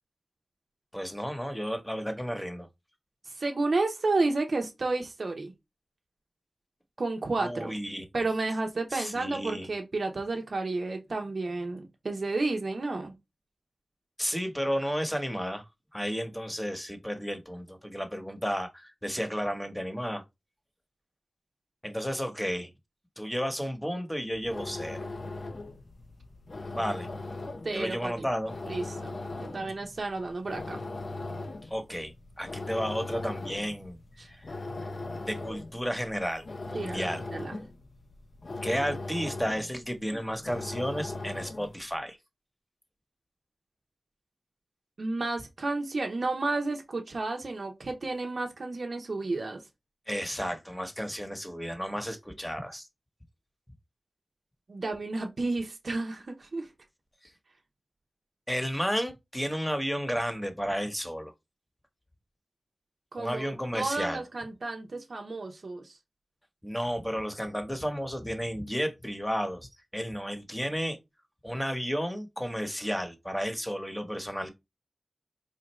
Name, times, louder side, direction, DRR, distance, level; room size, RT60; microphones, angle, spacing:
voice 1, 0.9-2.7 7.4-8.0 8.9-9.7 14.2-15.6 15.9-20.2 21.8-22.7 23.2-25.1 26.7-27.1 27.7-28.5 31.6-34.0 34.3-34.6 35.2-37.2 38.6-42.2 50.1-52.9 58.5-61.3 63.2-64.2 66.6-71.0 71.4-74.5, equal, 10° left, 1.0 m, -32 dB
voice 2, 3.2-5.5 7.0-7.7 8.1-13.1 27.6-28.3 28.7-30.8 34.2-34.3 36.7-37.6 45.0-49.6 54.7-56.7 63.1-66.0, right 3 dB, 70° right, 0.7 m, -31 dB
sound 1, 24.2-41.8, left 2 dB, 65° left, 0.5 m, -39 dB
4.3 x 2.5 x 3.0 m
cardioid pair, 45°, 0 cm